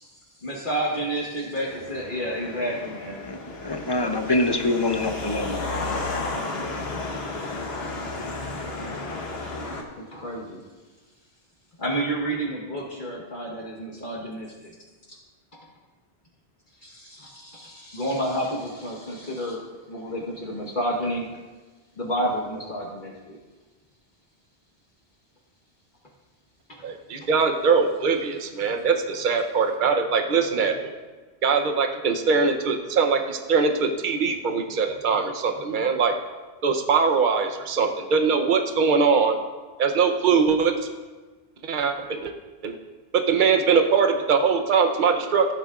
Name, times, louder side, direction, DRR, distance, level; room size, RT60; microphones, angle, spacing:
voice 1, 0.4-3.2 7.0-7.1 9.1-9.2 10.0-10.6 11.8-14.7 15.1-15.2 15.5-15.7 16.8-19.6 19.9-21.3 22.0-23.4 26.7-26.8 27.2-27.3, right 1 dB, 50° left, -3 dB, 1.4 m, -30 dB
sound 1, 1.7-9.8, left 2 dB, 70° left, 1.4 m, -33 dB
voice 2, 3.2-5.7, left 2 dB, 30° left, 5 dB, 0.6 m, -25 dB
voice 3, 26.8-30.9 31.4-36.2 36.6-39.4 39.8-40.7 41.6-41.9 42.2-42.3 42.6-42.8 43.1-45.5, right 5 dB, 50° right, 5 dB, 0.9 m, -22 dB
15.5 x 8.3 x 2.4 m, 1.3 s
omnidirectional pair, 1.1 m